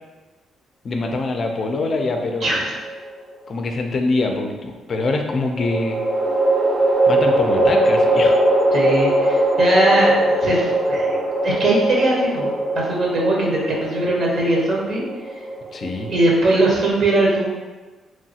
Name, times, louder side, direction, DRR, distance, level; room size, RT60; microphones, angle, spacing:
voice 1, 0.8-2.5 3.5-6.0 7.1-8.4 15.7-16.1, left 2 dB, 50° left, 4 dB, 0.4 m, -24 dB
voice 2, 2.4-2.7 8.7-12.5 12.7-15.0 16.1-17.5, right 1 dB, 60° right, -3 dB, 0.8 m, -20 dB
sound 1, 2.5-3.3 5.6-16.9, right 1 dB, 20° right, 0.5 m, -20 dB
3.1 x 2.3 x 2.7 m, 1.2 s
cardioid pair, 90°, 0 cm